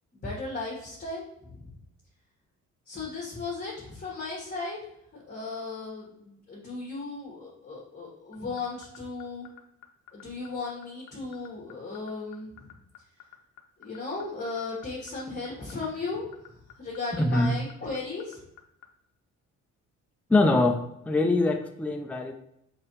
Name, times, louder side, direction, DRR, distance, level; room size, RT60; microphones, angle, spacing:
voice 1, 0.1-1.8 2.8-4.8 5.1-9.5 10.1-12.7 13.8-18.4, left 3 dB, 30° left, -6 dB, 1.4 m, -36 dB
sound 1, 8.3-18.9, left 14 dB, 80° left, 0.6 m, -49 dB
voice 2, 17.2-17.5 20.3-22.3, left 2 dB, 5° left, 5 dB, 0.4 m, -23 dB
4.0 x 3.8 x 3.0 m, 0.78 s
cardioid pair, 90°, 30 cm